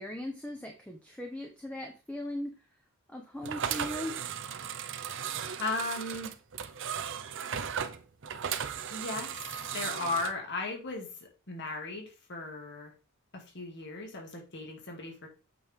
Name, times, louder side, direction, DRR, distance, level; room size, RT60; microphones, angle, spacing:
voice 1, 0.0-2.5 3.1-4.1, left 1 dB, 5° left, 2 dB, 1.0 m, -38 dB
sound 1, 3.4-10.3, right 8 dB, 60° right, 0.7 m, -36 dB
voice 2, 5.6-6.4 8.9-9.5 9.7-11.1 11.5-12.9 13.3-15.3, left 3 dB, 55° left, 1 dB, 2.4 m, -36 dB
8.5 x 5.4 x 3.7 m, 0.32 s
head